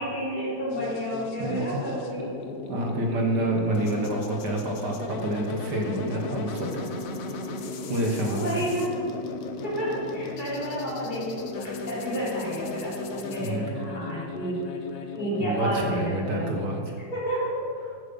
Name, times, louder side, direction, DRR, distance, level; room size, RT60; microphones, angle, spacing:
voice 1, 0.0-2.3 5.1-5.2 7.8-7.9 8.3-9.0 9.6-14.6 15.2-16.5 17.1-17.6, equal, 20° left, -8 dB, 3.7 m, -31 dB
sound 1, 0.7-16.8, left 3 dB, 55° left, 1.0 m, -36 dB
voice 2, 1.4-1.7 2.7-6.8 7.9-8.6 13.4-13.8 15.4-16.8, right 1 dB, 55° right, 1 dB, 1.9 m, -28 dB
14.0 x 7.8 x 5.4 m, 2.3 s
omnidirectional pair, 2.2 m